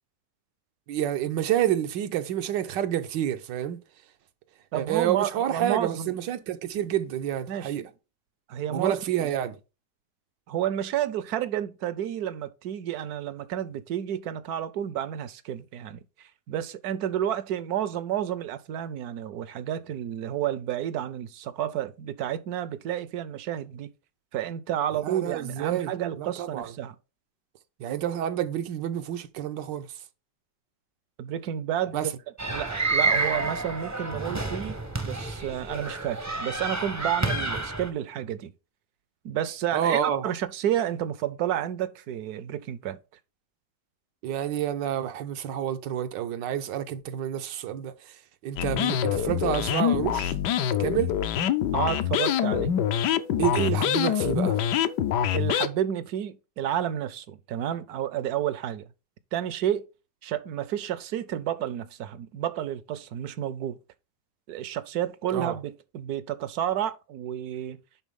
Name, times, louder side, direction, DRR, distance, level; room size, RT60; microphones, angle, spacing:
voice 1, 0.9-3.8 4.7-7.8 8.7-9.6 25.0-25.9 26.2-26.7 27.8-29.9 31.9-32.1 39.7-40.3 44.2-48.1 48.4-50.3 50.8-51.1 53.4-54.6 65.3-65.6, right 10 dB, 85° right, 1.4 m, -28 dB
voice 2, 4.7-6.1 7.5-7.9 8.5-9.0 10.5-23.9 24.3-26.9 31.2-32.1 32.5-38.5 39.2-43.0 51.7-52.8 55.3-58.9 59.3-59.9 60.2-63.8 64.5-67.8, right 10 dB, 70° right, 1.0 m, -31 dB
sound 1, 32.4-37.9, right 3 dB, 20° right, 0.4 m, -29 dB
sound 2, 48.6-55.7, left 10 dB, 75° left, 1.2 m, -25 dB
10.5 x 3.8 x 3.5 m
omnidirectional pair, 1.9 m